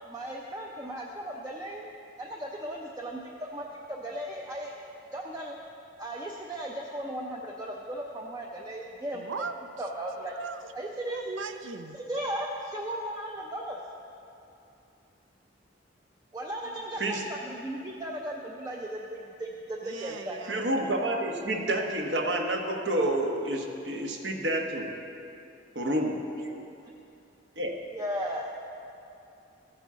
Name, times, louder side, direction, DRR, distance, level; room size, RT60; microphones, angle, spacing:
voice 1, 0.1-1.9 2.2-4.8 5.1-5.5 6.0-9.5 9.8-10.3 10.7-11.2 11.9-13.8 16.3-20.4 27.9-28.5, right 1 dB, 20° right, -1 dB, 0.5 m, -36 dB
voice 2, 9.1-9.5 10.2-10.7 11.1-12.0 19.8-20.6, right 4 dB, 85° right, 8 dB, 0.6 m, -39 dB
voice 3, 20.5-24.9 25.7-26.2 27.6-27.7, right 1 dB, 65° right, 2 dB, 1.1 m, -29 dB
14.0 x 8.9 x 3.7 m, 2.7 s
head